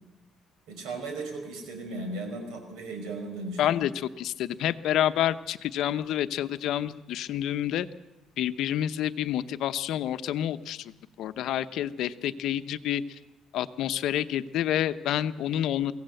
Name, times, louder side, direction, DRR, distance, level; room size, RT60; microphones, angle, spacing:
voice 1, 0.7-3.6, right 2 dB, 90° right, 6 dB, 5.4 m, -36 dB
voice 2, 3.6-7.9 8.4-13.2 13.5-15.9, left 11 dB, 75° left, 12 dB, 0.9 m, -28 dB
23.0 x 16.5 x 7.8 m, 1.0 s
cardioid pair, 120°, 0 cm